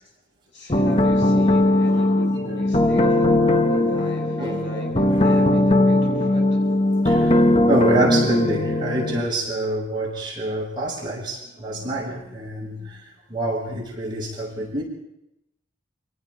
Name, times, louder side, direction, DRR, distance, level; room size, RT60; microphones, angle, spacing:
voice 1, 0.5-3.3 3.9-6.6, left 1 dB, 75° left, 7.0 m, -38 dB
sound 1, 0.7-9.2, left 1 dB, 30° left, 1.1 m, -19 dB
voice 2, 1.8-2.2 2.8-3.0 3.4-5.5 7.0-14.8, right 1 dB, 25° right, 7.4 m, -28 dB
28.0 x 19.0 x 4.9 m
head